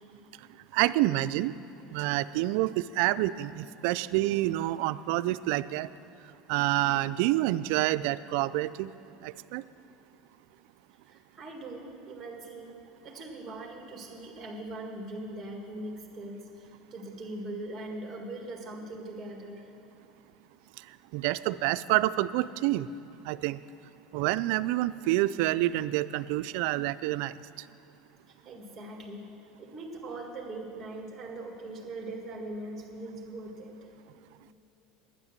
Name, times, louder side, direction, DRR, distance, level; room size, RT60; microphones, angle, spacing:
voice 1, 0.7-1.5 1.9-5.9 6.5-8.9 9.2-9.6 21.1-22.9 23.2-23.6 24.1-27.7, right 16 dB, 70° right, 14 dB, 0.3 m, -28 dB
voice 2, 11.1-12.8 13.0-19.7 24.1-24.2 28.3-29.3 29.6-33.9, right 2 dB, 15° right, 0 dB, 1.8 m, -41 dB
11.0 x 9.6 x 7.4 m, 3.0 s
supercardioid pair, 130°, 0 cm